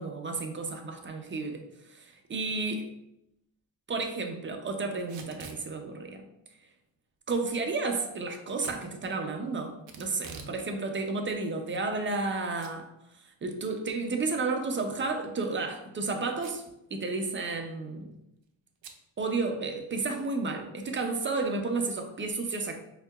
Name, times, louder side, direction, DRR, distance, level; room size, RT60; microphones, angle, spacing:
voice 1, 0.0-1.6 2.0-2.9 3.9-6.2 7.3-12.9 13.4-16.6 16.9-18.1 19.2-22.8, right 3 dB, 25° right, 4 dB, 0.3 m, -32 dB
Packing tape duct tape / Tearing, 5.0-5.6 8.5-8.8 9.9-10.6 10.9-11.0 11.7-12.3 12.6-12.7 13.1-13.2 15.2-15.4 16.4-16.7 17.0-17.1 17.4-17.7 18.8-19.0, right 5 dB, 65° right, 0.6 m, -46 dB
4.4 x 2.8 x 2.2 m, 0.82 s
wide cardioid pair, 130°, 48 cm